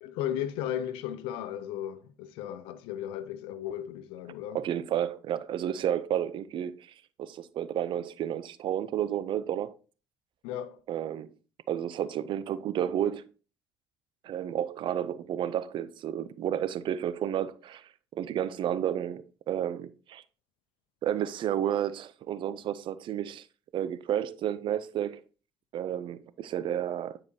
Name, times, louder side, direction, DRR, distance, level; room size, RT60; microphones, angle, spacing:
voice 1, 0.0-4.6 10.4-10.8, left 10 dB, 85° left, 0.6 m, -35 dB
voice 2, 4.5-6.9 7.2-9.8 10.9-11.3 11.7-13.3 14.2-20.2 21.0-23.5 23.7-25.2 25.7-27.2, right 10 dB, 65° right, 0.6 m, -31 dB
9.4 x 4.9 x 2.8 m
supercardioid pair, 65°, 9 cm